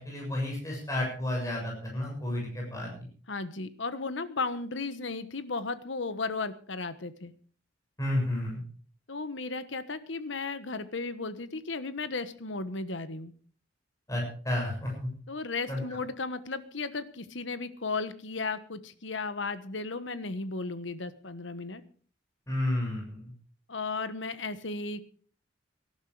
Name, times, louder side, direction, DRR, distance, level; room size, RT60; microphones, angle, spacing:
voice 1, 0.0-3.1 8.0-8.6 14.1-15.1 15.7-15.8 22.5-23.3, left 1 dB, 15° left, -2 dB, 7.0 m, -31 dB
voice 2, 3.3-7.3 9.1-13.3 15.3-21.8 23.7-25.0, left 3 dB, 70° left, 12 dB, 1.3 m, -35 dB
18.5 x 12.0 x 4.9 m, 0.43 s
head